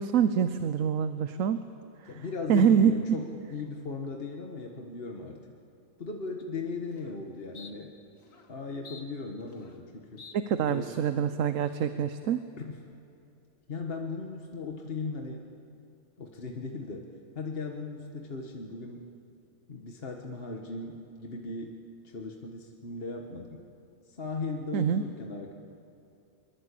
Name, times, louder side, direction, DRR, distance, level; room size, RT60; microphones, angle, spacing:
voice 1, 0.0-1.6 2.5-2.9 10.3-12.4 24.7-25.0, right 8 dB, 80° right, 10 dB, 1.1 m, -25 dB
voice 2, 2.0-5.4 6.0-7.9 8.5-10.3 10.6-11.1 12.6-12.8 13.7-15.4 16.2-19.1 19.7-21.8 22.0-23.6 24.0-25.5, left 3 dB, 50° left, 1 dB, 1.7 m, -38 dB
sound 1, 6.4-6.5 6.9-7.2 7.5-7.7 8.2-8.5 8.8-9.9 10.2-10.3 10.8-11.2, left 5 dB, 85° left, 2.0 m, -50 dB
23.5 x 22.5 x 8.5 m, 2.6 s
omnidirectional pair, 1.3 m